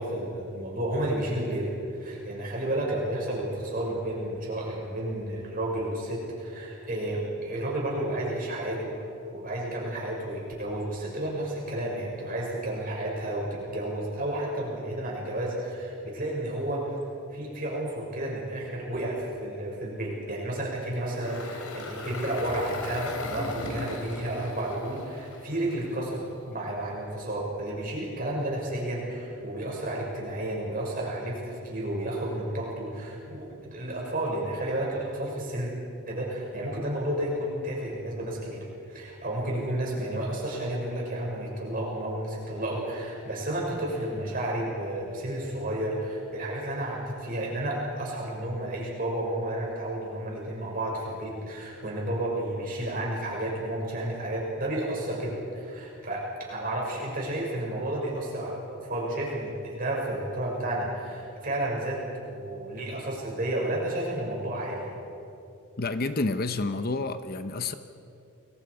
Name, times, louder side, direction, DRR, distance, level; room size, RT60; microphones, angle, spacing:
voice 1, 0.0-8.9 9.3-17.0 17.3-35.7 36.1-64.9, right 1 dB, 40° right, -3 dB, 6.3 m, -31 dB
Engine, 20.9-26.2, left 2 dB, 75° left, 3.3 m, -38 dB
voice 2, 65.8-67.7, left 3 dB, 45° left, 10 dB, 0.7 m, -29 dB
29.5 x 22.0 x 5.0 m, 2.7 s
head